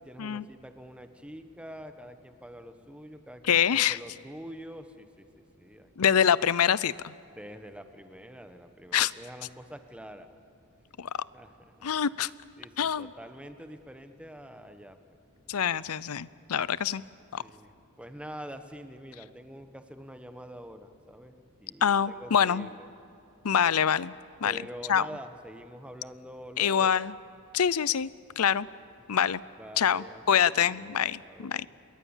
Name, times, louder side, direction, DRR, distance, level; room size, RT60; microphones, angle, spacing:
voice 1, 0.0-5.3 5.6-6.1 7.3-10.4 11.3-11.9 12.6-15.0 17.4-22.9 24.4-26.9 29.6-31.7, equal, 5° right, 8 dB, 1.2 m, -46 dB
voice 2, 3.5-4.0 6.0-7.1 8.9-9.1 11.0-11.1 11.8-12.3 12.8-13.1 15.5-17.0 17.3-17.4 21.8-22.7 23.4-24.1 24.4-24.6 24.9-25.1 26.6-27.1 27.5-28.1 28.4-28.7 29.1-29.4 29.8-31.7, left 8 dB, 75° left, 19 dB, 0.6 m, -25 dB
27.5 x 22.0 x 7.3 m, 2.6 s
head